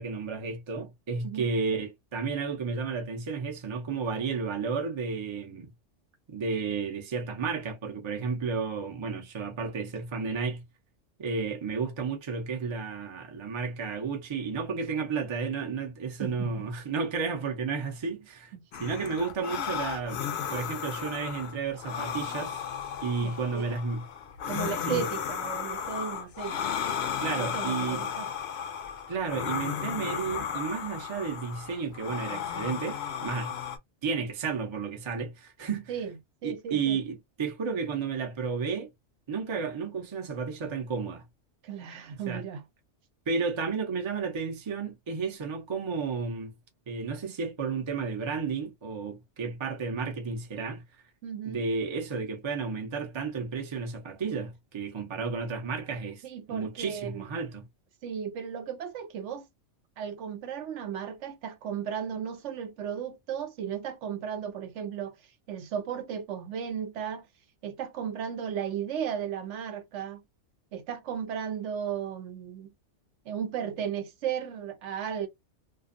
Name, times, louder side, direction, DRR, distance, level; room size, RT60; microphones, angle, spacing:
voice 1, 0.0-5.7 6.3-10.6 11.2-18.5 18.8-20.3 20.5-22.6 23.0-24.0 24.9-25.0 27.2-28.0 29.1-33.5 34.0-36.0 36.4-38.9 39.3-41.2 42.1-42.4 43.3-46.5 46.9-50.8 51.4-57.7, right 5 dB, 35° right, 0.5 m, -32 dB
voice 2, 16.2-16.7 18.5-19.1 23.2-23.6 24.5-26.6 27.3-28.3 35.9-36.1 36.4-37.0 41.6-42.6 51.2-51.6 56.2-57.2 58.0-59.5 60.0-65.2 65.5-67.3 67.6-70.2 70.7-72.7 73.3-75.3, right 8 dB, 75° right, 0.9 m, -35 dB
sound 1, 18.7-33.8, left 8 dB, 65° left, 0.8 m, -34 dB
2.5 x 2.5 x 2.5 m
omnidirectional pair, 1.3 m